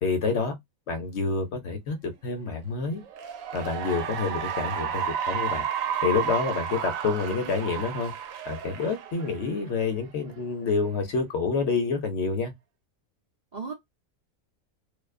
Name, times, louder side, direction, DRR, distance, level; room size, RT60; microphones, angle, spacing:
voice 1, 0.0-0.6 0.9-3.0 3.5-5.6 6.0-8.1 8.4-12.5, left 4 dB, 65° left, 0.9 m, -28 dB
Cheering / Applause, 3.0-9.7, right 8 dB, 80° right, 1.0 m, -32 dB
voice 2, 7.4-7.9 13.5-13.7, right 5 dB, 40° right, 0.7 m, -39 dB
2.5 x 2.2 x 2.3 m
omnidirectional pair, 1.4 m